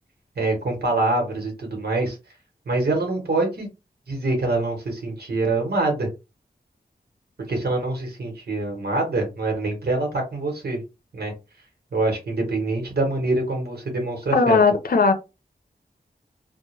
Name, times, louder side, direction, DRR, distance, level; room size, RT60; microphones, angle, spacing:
voice 1, 0.4-2.2 2.7-3.7 4.1-6.1 7.5-10.8 11.1-11.3 11.9-14.6, right 2 dB, 75° right, 1.0 m, -25 dB
voice 2, 14.3-15.1, left 4 dB, 65° left, 0.6 m, -17 dB
2.3 x 2.1 x 3.0 m
wide cardioid pair, 90°, 16 cm